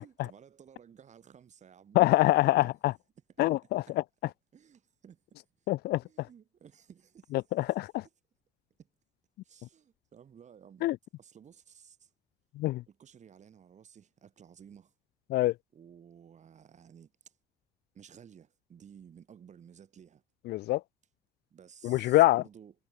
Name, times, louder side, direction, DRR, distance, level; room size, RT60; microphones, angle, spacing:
voice 1, 0.0-2.0 2.6-2.9 3.4-3.5 3.9-4.0 4.5-5.4 6.0-7.5 9.4-10.9 11.2-12.1 12.9-14.9 15.7-17.3 17.9-20.2 21.5-22.7, right 8 dB, 45° right, 5.3 m, -55 dB
voice 2, 2.0-2.9 3.4-3.8 5.7-6.3 7.6-8.0 10.8-11.0 12.6-12.8 15.3-15.5 20.5-20.8 21.8-22.4, left 17 dB, 70° left, 0.6 m, -25 dB
cardioid pair, 110°, 17 cm